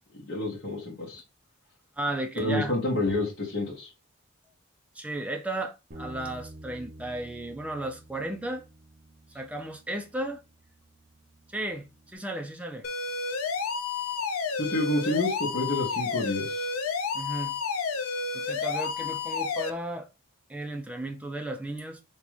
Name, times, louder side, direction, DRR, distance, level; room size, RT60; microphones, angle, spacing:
voice 1, 0.3-1.2 2.4-3.9 14.6-16.7, left 2 dB, 50° left, 1.1 m, -29 dB
voice 2, 2.0-2.7 4.9-8.6 9.3-10.4 11.5-12.9 17.1-17.5 18.3-20.1 20.5-22.0, right 1 dB, 5° right, 0.4 m, -34 dB
Bass guitar, 5.9-12.2, right 1 dB, 40° right, 0.7 m, -49 dB
sound 1, 12.8-19.7, left 5 dB, 85° left, 0.5 m, -31 dB
3.6 x 2.9 x 3.1 m
head